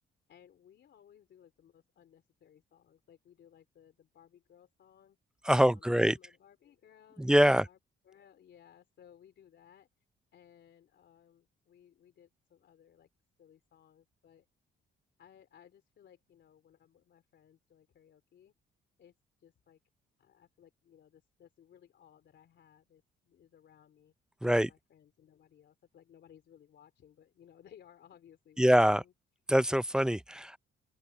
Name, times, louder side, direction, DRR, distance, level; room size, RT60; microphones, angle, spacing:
voice 1, 0.3-5.2 5.6-9.9 10.3-13.1 13.4-14.4 15.2-18.5 19.0-19.1 19.4-19.8 20.2-24.1 24.5-29.1, left 9 dB, 65° left, 3.3 m, -61 dB
voice 2, 5.5-6.1 7.2-7.6 24.4-24.7 28.6-29.0 29.5-30.6, equal, 5° right, 0.4 m, -24 dB
open air
cardioid pair, 90°, 20 cm